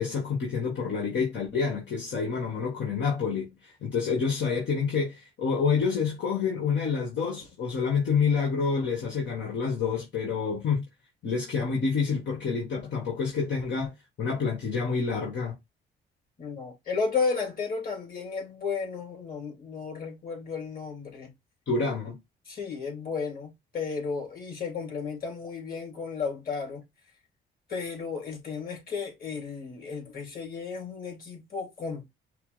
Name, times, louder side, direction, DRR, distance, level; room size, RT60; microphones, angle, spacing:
voice 1, 0.0-10.8 11.2-13.9 14.2-15.6 21.7-22.2, left 5 dB, 65° left, 1.9 m, -28 dB
voice 2, 16.4-21.3 22.5-26.8 27.7-32.1, left 5 dB, 45° left, 3.4 m, -33 dB
5.8 x 2.2 x 4.0 m
cardioid pair, 90°, 20 cm